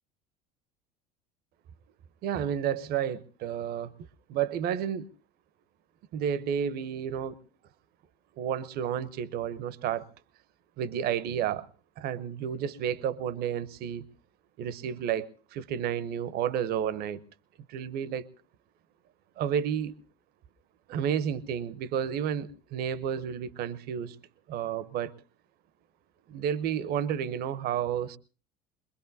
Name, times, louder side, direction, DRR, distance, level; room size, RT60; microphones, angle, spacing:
voice 1, 2.2-3.9 4.3-5.1 6.1-7.3 8.4-10.1 10.8-11.7 12.0-14.0 14.6-17.2 17.7-18.3 19.4-20.0 20.9-24.2 24.5-25.1 26.3-28.2, right 9 dB, 50° right, 0.8 m, -31 dB
23.0 x 21.5 x 2.7 m
hypercardioid pair, 75°, 21 cm